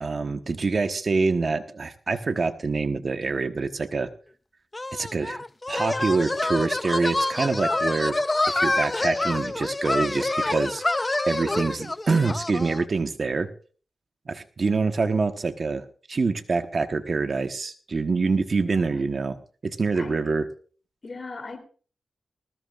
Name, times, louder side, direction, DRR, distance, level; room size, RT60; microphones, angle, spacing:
voice 1, 0.0-4.1 4.9-8.2 8.5-10.8 11.3-13.5 14.3-20.5, right 4 dB, 55° right, 8 dB, 1.2 m, -26 dB
sound 1, 4.7-12.8, left 2 dB, 25° left, 0.5 m, -27 dB
voice 2, 21.0-21.6, left 3 dB, 45° left, 8 dB, 3.4 m, -38 dB
20.0 x 15.0 x 2.5 m, 0.40 s
cardioid pair, 60°, 0 cm